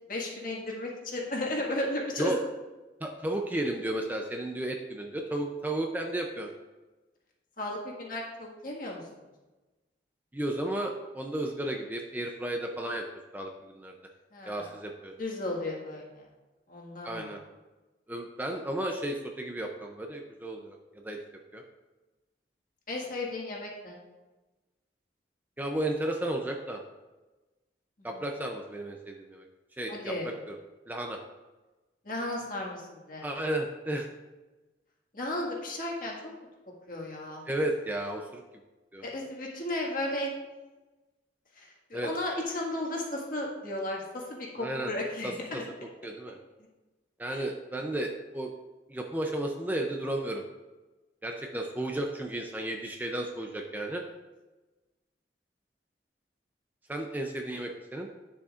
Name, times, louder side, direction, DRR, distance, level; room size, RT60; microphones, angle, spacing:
voice 1, 0.1-2.4 7.6-9.0 14.3-14.7 15.2-16.2 16.7-17.3 22.9-24.0 29.9-30.3 32.0-33.3 35.1-36.2 36.9-37.4 39.0-40.3 41.6-45.6 47.3-47.4, left 1 dB, 50° left, -2 dB, 1.8 m, -34 dB
voice 2, 3.0-6.5 10.3-13.0 13.3-13.9 14.5-15.1 17.0-17.4 18.1-20.8 21.0-21.2 21.5-21.6 25.6-26.8 28.0-29.5 29.8-30.6 30.9-31.2 33.2-34.1 37.5-38.4 38.9-39.1 41.9-42.1 44.6-44.9 45.2-45.6 46.0-46.4 47.2-48.5 48.9-50.4 51.2-54.0 56.9-58.1, right 1 dB, 10° right, 2 dB, 0.5 m, -33 dB
10.5 x 6.9 x 2.5 m, 1.2 s
head